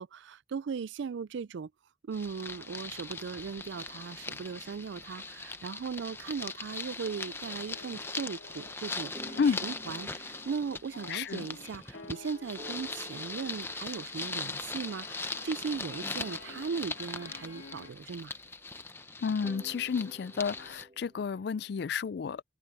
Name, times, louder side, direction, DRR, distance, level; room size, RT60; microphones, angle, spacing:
voice 1, 0.0-1.7 2.0-9.4 9.6-18.3, right 5 dB, 65° right, 0.4 m, -38 dB
sound 1, 2.1-20.8, left 3 dB, 10° left, 0.6 m, -40 dB
sound 2, 6.0-6.8 7.0-17.9, left 3 dB, 75° left, 3.0 m, -52 dB
sound 3, 8.8-12.2 12.6-15.5 15.8-21.7, right 1 dB, 30° right, 1.7 m, -53 dB
voice 2, 11.1-11.5 19.2-22.4, left 6 dB, 55° left, 0.3 m, -31 dB
head